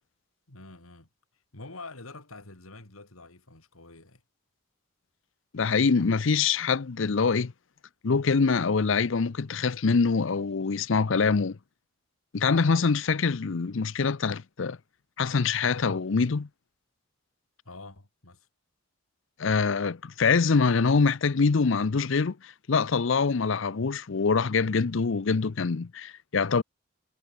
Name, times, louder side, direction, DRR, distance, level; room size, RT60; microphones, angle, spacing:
voice 1, 0.5-1.1 1.5-4.2 17.7-18.5, left 3 dB, 90° left, 3.7 m, -46 dB
voice 2, 5.5-7.5 8.0-11.6 12.3-14.8 15.2-16.5 19.4-26.6, left 5 dB, 65° left, 0.6 m, -24 dB
head